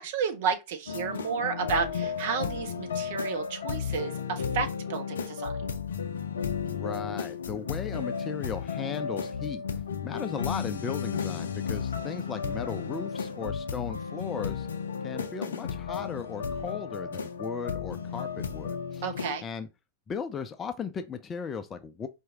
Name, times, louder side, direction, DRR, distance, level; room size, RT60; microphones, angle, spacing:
voice 1, 0.0-5.5 19.0-19.4, right 6 dB, 55° right, 0.9 m, -31 dB
sound 1, 0.9-19.4, left 6 dB, 70° left, 0.5 m, -33 dB
voice 2, 6.7-9.6 10.0-14.7 15.0-19.1 19.4-19.7 20.1-22.1, left 6 dB, 20° left, 0.5 m, -37 dB
4.4 x 2.7 x 3.6 m
figure-of-eight pair, 90°, 0 cm